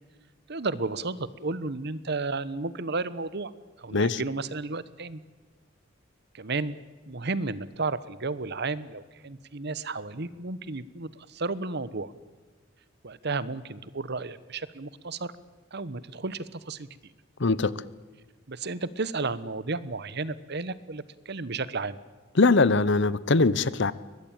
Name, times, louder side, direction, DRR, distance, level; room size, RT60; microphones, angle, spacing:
voice 1, 0.5-3.5 3.8-5.2 6.3-6.8 7.1-12.1 13.0-15.3 15.7-16.9 18.5-22.0, right 3 dB, 55° right, 1.1 m, -33 dB
voice 2, 17.4-17.7 22.4-23.9, left 3 dB, 60° left, 0.9 m, -21 dB
23.0 x 20.0 x 8.9 m
head